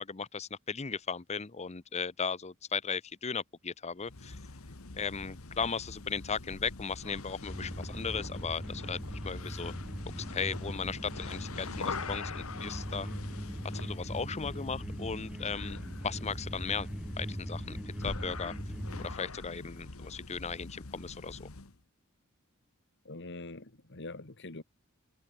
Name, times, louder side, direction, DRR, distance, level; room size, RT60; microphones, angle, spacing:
voice 1, 0.0-4.4 5.0-9.0 9.2-9.7 10.2-13.1 13.7-16.9 17.2-17.8 18.0-18.5 19.0-21.5, left 5 dB, 30° left, 0.8 m, -36 dB
sound 1, 4.0-21.8, left 3 dB, 85° left, 1.6 m, -43 dB
sound 2, 7.5-19.1, equal, 5° right, 0.8 m, -41 dB
voice 2, 23.0-24.6, left 2 dB, 60° left, 2.2 m, -44 dB
head